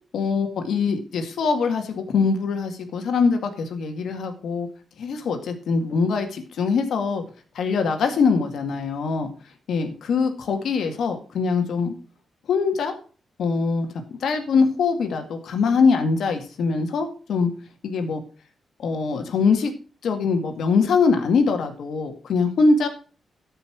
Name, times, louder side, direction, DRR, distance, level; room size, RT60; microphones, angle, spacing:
voice 1, 0.1-4.7 5.0-7.2 7.6-9.3 9.7-11.9 12.5-12.9 13.4-13.9 14.2-17.5 17.8-18.2 18.8-19.7 20.0-22.9, left 4 dB, 80° left, 6 dB, 2.0 m, -22 dB
12.5 x 5.6 x 6.1 m, 0.39 s
cardioid pair, 95°, 0 cm